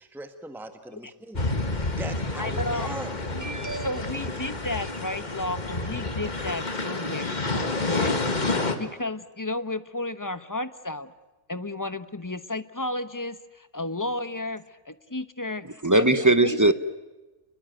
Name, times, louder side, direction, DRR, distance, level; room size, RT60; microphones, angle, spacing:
voice 1, 0.0-1.4 1.7-3.2, right 2 dB, ahead, 1.5 m, -40 dB
sound 1, 1.4-8.8, left 2 dB, 35° left, 1.8 m, -29 dB
voice 2, 2.4-2.9 3.3-3.5 3.8-8.2 8.8-11.1 11.5-16.1 16.4-16.6, left 2 dB, 15° left, 0.9 m, -33 dB
voice 3, 3.4-3.9 15.8-16.7, right 2 dB, 15° right, 0.8 m, -20 dB
30.0 x 21.5 x 9.1 m
omnidirectional pair, 1.3 m